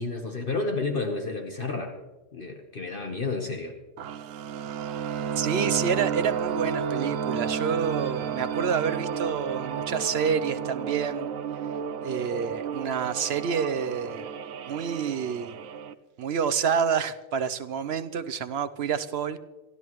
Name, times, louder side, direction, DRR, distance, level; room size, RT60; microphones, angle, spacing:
voice 1, 0.0-1.9 2.3-3.8, left 3 dB, 45° left, 3 dB, 1.2 m, -31 dB
sound 1, 4.0-15.9, right 7 dB, 85° right, 1.0 m, -32 dB
voice 2, 5.4-11.3 12.0-14.3 14.7-15.6 16.2-19.4, right 7 dB, 60° right, 11 dB, 0.8 m, -28 dB
28.0 x 12.5 x 3.1 m, 1.2 s
omnidirectional pair, 1.4 m